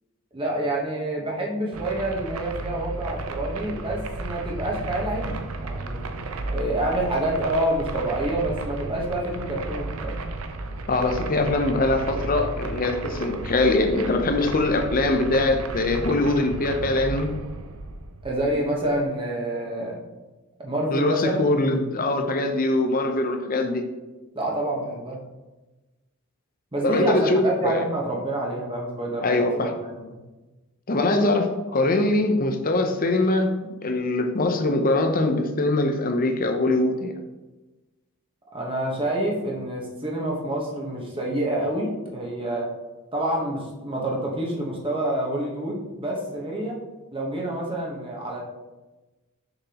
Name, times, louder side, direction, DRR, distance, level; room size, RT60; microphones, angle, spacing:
voice 1, 0.3-6.0 6.5-10.2 18.2-20.0 20.6-21.5 24.3-25.2 26.7-30.2 38.5-42.7 43.1-46.8 47.1-48.4, right 1 dB, 25° right, -2 dB, 1.1 m, -27 dB
sound 1, 1.7-19.0, right 2 dB, 75° right, 0.6 m, -33 dB
voice 2, 10.9-17.3 20.9-23.9 26.8-27.8 29.2-29.7 30.9-37.1, left 2 dB, 40° left, 5 dB, 0.7 m, -22 dB
6.7 x 5.8 x 2.9 m, 1.1 s
head